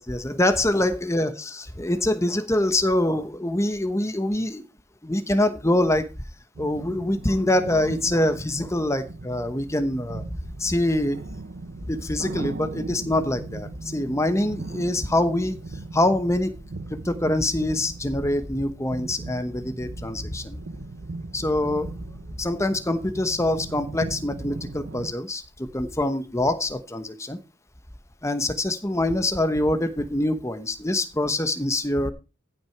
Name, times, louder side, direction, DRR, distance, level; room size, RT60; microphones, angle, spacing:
voice 1, 0.1-4.6 5.0-6.1 6.6-10.3 10.6-11.2 11.8-15.6 15.9-16.5 16.9-20.6 21.3-21.9 22.4-27.4 28.2-32.1, left 1 dB, 15° left, 10 dB, 1.0 m, -25 dB
sound 1, 6.5-25.1, right 2 dB, 50° right, 0.7 m, -38 dB
15.0 x 6.0 x 4.6 m, 0.29 s
head